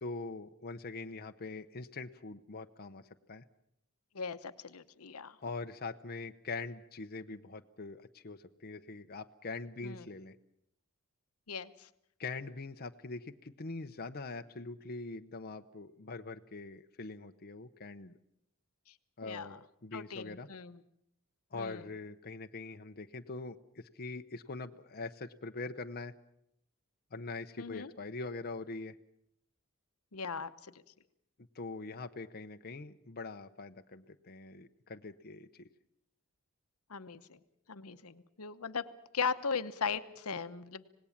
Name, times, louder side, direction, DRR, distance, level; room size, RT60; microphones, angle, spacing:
voice 1, 0.0-3.0 3.3-3.4 5.4-10.3 12.2-18.1 19.2-20.5 21.5-26.1 27.1-29.0 31.5-35.6, left 3 dB, 45° left, 6 dB, 0.8 m, -43 dB
voice 2, 4.1-5.4 9.8-10.1 11.5-11.9 19.2-19.6 19.9-20.8 21.5-21.8 27.6-27.9 30.1-30.7 36.9-37.4 37.7-38.9 39.1-40.8, left 5 dB, 80° left, 11 dB, 1.0 m, -38 dB
26.5 x 19.0 x 7.3 m, 0.75 s
head